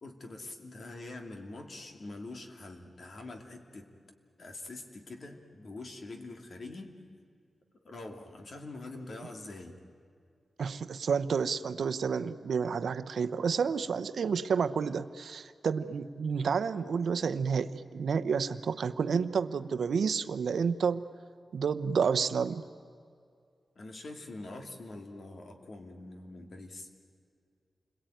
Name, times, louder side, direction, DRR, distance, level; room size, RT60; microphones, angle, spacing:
voice 1, 0.0-3.9 4.4-7.0 7.8-9.8 23.8-26.9, left 2 dB, 50° left, 4 dB, 2.7 m, -44 dB
voice 2, 10.6-21.0 21.5-22.6, right 6 dB, 75° right, 12 dB, 0.9 m, -30 dB
29.0 x 22.0 x 9.3 m, 2.3 s
wide cardioid pair, 160°, 0 cm